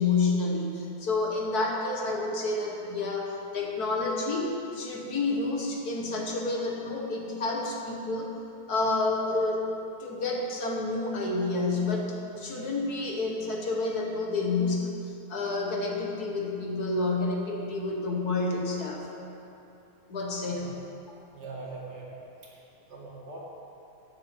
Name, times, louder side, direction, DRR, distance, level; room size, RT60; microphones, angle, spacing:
voice 1, 0.0-8.4 8.7-9.7 10.0-14.9 15.3-19.1 20.1-20.6, left 3 dB, 60° left, 0 dB, 2.0 m, -29 dB
voice 2, 21.3-22.2 22.4-22.6 22.9-23.4, right 3 dB, 70° right, -4 dB, 2.8 m, -42 dB
11.5 x 8.9 x 7.3 m, 2.8 s
omnidirectional pair, 1.9 m